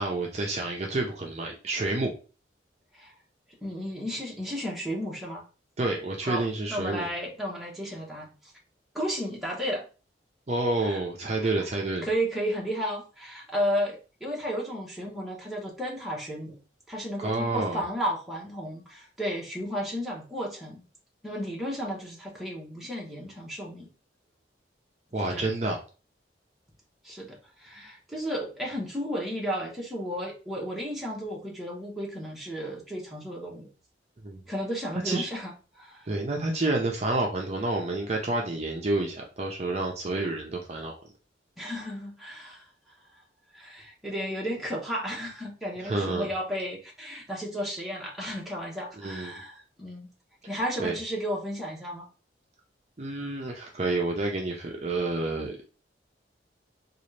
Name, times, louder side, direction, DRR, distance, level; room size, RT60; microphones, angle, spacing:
voice 1, 0.0-2.1 5.8-7.1 10.5-12.1 17.2-17.8 25.1-25.8 34.2-34.4 35.0-35.3 36.1-41.0 45.8-46.3 49.0-49.4 50.8-50.9 53.0-55.6, right 2 dB, 35° right, 0 dB, 0.5 m, -29 dB
voice 2, 3.6-5.4 6.2-8.3 8.9-9.8 10.8-11.0 11.4-11.5 12.0-16.6 16.9-20.8 21.2-23.9 25.2-25.5 27.0-33.7 34.5-35.5 35.8-36.1 41.6-42.6 43.5-50.1 50.5-52.1, equal, ahead, -3 dB, 1.0 m, -33 dB
4.0 x 2.4 x 3.2 m, 0.34 s
head